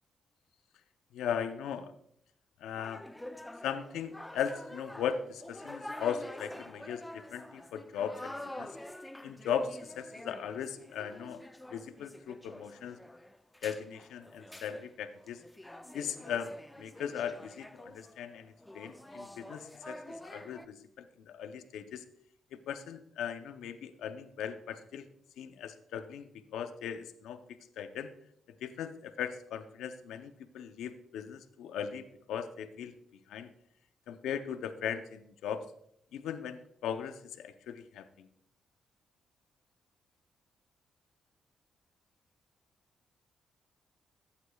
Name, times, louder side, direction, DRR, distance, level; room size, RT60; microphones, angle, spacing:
voice 1, 1.1-1.9 2.6-3.0 3.6-8.8 9.2-11.4 11.7-13.0 13.6-15.4 15.9-22.0 22.5-25.1 25.4-28.1 28.6-32.9 33.3-33.5 34.1-35.7 36.1-38.3, left 8 dB, 90° left, 10 dB, 0.6 m, -38 dB
sound 1, 2.7-20.7, left 1 dB, 10° left, 0.5 m, -47 dB
14.0 x 8.1 x 2.3 m, 0.71 s
cardioid pair, 70°, 0 cm